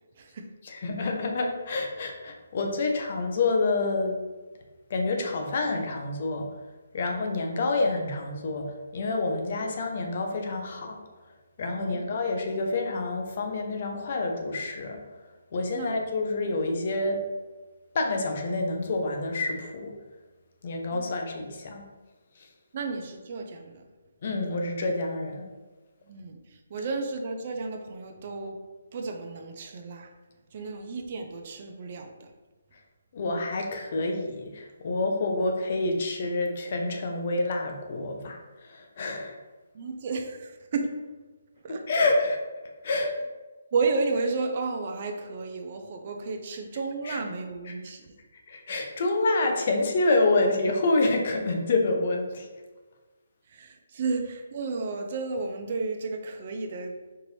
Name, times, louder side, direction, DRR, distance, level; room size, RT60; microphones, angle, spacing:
voice 1, 0.2-0.5 11.7-12.0 15.7-16.0 20.9-21.0 22.7-23.8 26.0-28.6 28.9-30.1 30.5-32.3 39.7-41.0 41.6-42.1 43.7-48.1 53.5-57.0, right 4 dB, 40° right, 4 dB, 0.5 m, -32 dB
voice 2, 0.7-4.2 4.9-6.4 6.9-8.7 8.9-11.0 11.6-15.0 15.5-17.2 17.9-19.9 20.6-21.8 24.2-25.5 33.1-39.4 41.9-42.4 42.8-43.1 47.1-47.2 48.5-52.5, left 2 dB, 45° left, 3 dB, 0.6 m, -27 dB
4.6 x 2.5 x 3.2 m, 1.2 s
hypercardioid pair, 165°, 0 cm